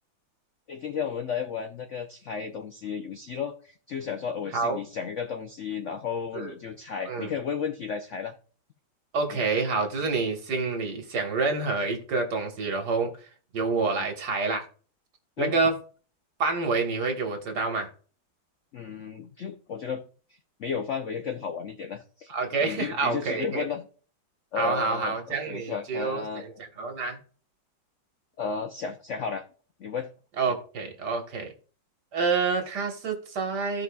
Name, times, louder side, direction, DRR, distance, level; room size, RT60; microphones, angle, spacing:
voice 1, 0.7-8.3 9.3-9.4 15.4-15.6 18.7-20.0 20.6-22.3 22.6-23.9 24.5-26.4 28.4-29.4 29.8-30.1, left 6 dB, 70° left, 0.7 m, -33 dB
voice 2, 9.1-13.1 13.5-14.7 15.4-15.7 16.4-17.9 22.3-23.6 24.6-27.2 30.4-31.5 32.1-33.8, right 4 dB, 60° right, 1.9 m, -28 dB
15.0 x 5.0 x 2.3 m
omnidirectional pair, 2.1 m